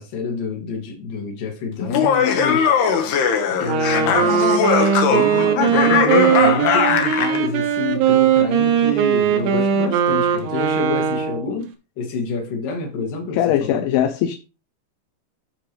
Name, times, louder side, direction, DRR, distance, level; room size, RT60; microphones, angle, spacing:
voice 1, 0.0-2.7 3.6-4.5 5.1-11.7 12.0-13.9, left 3 dB, 50° left, 3.4 m, -27 dB
Laughter, 1.8-7.4, left 7 dB, 65° left, 3.1 m, -19 dB
Wind instrument woodwind instrument, 3.5-11.5, right 8 dB, 90° right, 4.3 m, -19 dB
voice 2, 13.3-14.4, left 11 dB, 80° left, 3.0 m, -20 dB
14.5 x 5.8 x 3.3 m
omnidirectional pair, 6.0 m